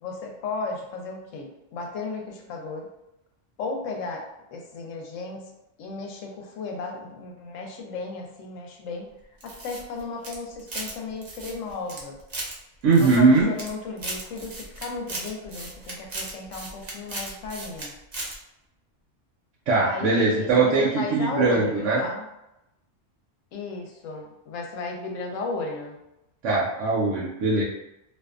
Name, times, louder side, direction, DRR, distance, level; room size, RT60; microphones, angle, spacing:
voice 1, 0.0-2.9 3.6-5.4 5.8-9.1 9.4-12.2 13.0-18.0 19.8-22.3 23.5-26.0, left 3 dB, 90° left, 1 dB, 1.0 m, -34 dB
sound 1, 9.4-10.9 11.2-12.5 12.9-13.7 14.0-17.9 18.1-18.3, right 2 dB, 45° right, 0.5 m, -36 dB
voice 2, 12.8-13.5 19.7-22.0 26.4-27.6, right 3 dB, 75° right, -5 dB, 0.9 m, -20 dB
2.5 x 2.3 x 2.3 m, 0.88 s
omnidirectional pair, 1.3 m